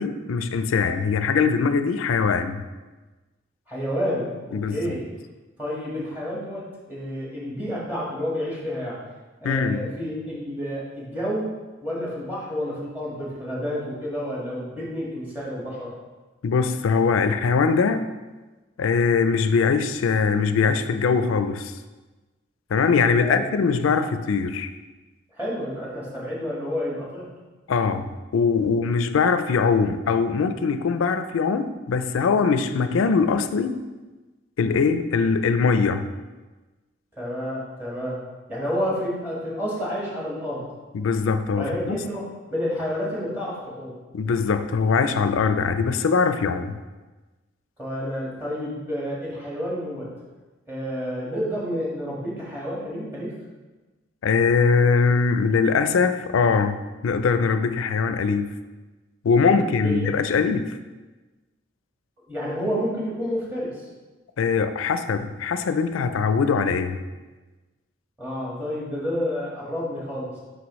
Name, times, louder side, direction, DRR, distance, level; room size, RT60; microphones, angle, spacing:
voice 1, 0.0-2.6 4.5-4.9 9.4-9.9 16.4-18.1 18.8-21.7 22.7-24.7 27.7-33.8 34.6-36.0 40.9-42.0 44.1-46.8 54.2-58.5 59.2-60.8 64.4-67.0, left 5 dB, 90° left, 10 dB, 0.4 m, -22 dB
voice 2, 3.7-5.0 5.6-9.0 9.4-11.5 11.8-15.9 23.2-23.4 25.3-27.3 37.2-38.2 38.5-40.6 41.6-42.2 42.5-44.0 47.8-50.1 50.7-53.3 59.8-60.1 62.3-63.8 68.2-70.3, equal, 10° right, -6 dB, 1.6 m, -29 dB
6.1 x 5.4 x 3.1 m, 1.2 s
head